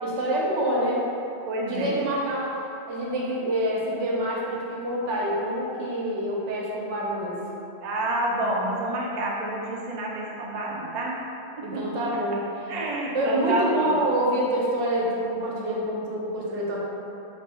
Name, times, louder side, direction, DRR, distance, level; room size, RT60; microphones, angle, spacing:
voice 1, 0.0-1.0 1.7-7.4 11.6-12.7 13.1-16.8, right 1 dB, 85° right, -4 dB, 1.0 m, -27 dB
voice 2, 1.5-2.0 7.8-11.2 11.5-11.9 12.7-14.0, right 1 dB, 55° right, -3 dB, 0.5 m, -28 dB
2.6 x 2.6 x 4.2 m, 2.7 s
omnidirectional pair, 1.2 m